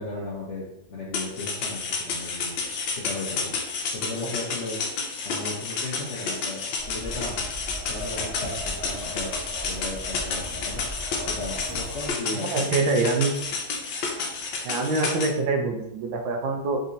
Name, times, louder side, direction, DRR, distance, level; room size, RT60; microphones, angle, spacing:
voice 1, 0.0-2.5 2.9-3.5 3.9-4.8 5.2-7.4 7.8-9.3 9.6-10.8 11.2-12.7, left 2 dB, 65° left, -6 dB, 0.7 m, -36 dB
sound 1, 1.1-15.3, left 4 dB, 85° left, 1.4 m, -31 dB
sound 2, 6.8-12.1, equal, 5° left, 1.0 m, -37 dB
voice 2, 12.3-13.3 14.6-16.8, right 3 dB, 90° right, 3 dB, 1.4 m, -25 dB
4.0 x 2.7 x 2.5 m, 0.86 s
omnidirectional pair, 2.0 m